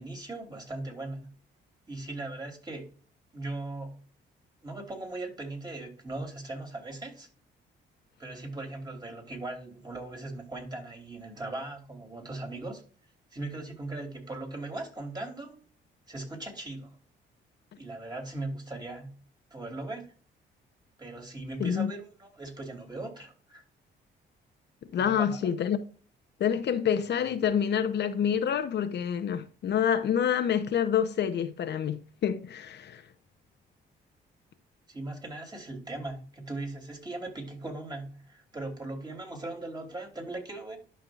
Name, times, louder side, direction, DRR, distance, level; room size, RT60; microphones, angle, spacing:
voice 1, 0.0-1.3 1.9-2.9 3.3-4.0 4.6-7.3 8.2-12.8 13.3-15.6 16.1-17.0 17.8-19.2 19.5-20.1 21.0-23.6 25.0-25.4 34.9-40.8, right 2 dB, 20° right, 3.0 m, -39 dB
voice 2, 21.6-21.9 24.9-25.8 26.4-33.0, left 8 dB, 60° left, 0.9 m, -27 dB
11.5 x 5.6 x 2.5 m
cardioid pair, 90°, 20 cm